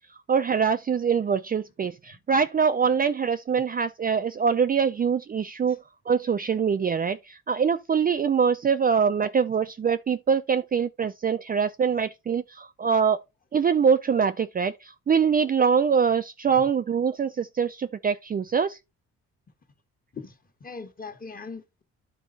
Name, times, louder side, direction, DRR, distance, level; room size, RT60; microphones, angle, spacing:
voice 1, 0.3-5.8 6.1-13.2 13.5-18.8, right 6 dB, 30° right, 0.4 m, -24 dB
voice 2, 20.1-21.8, left 4 dB, 30° left, 1.5 m, -41 dB
10.0 x 4.1 x 4.0 m
cardioid pair, 90°, 30 cm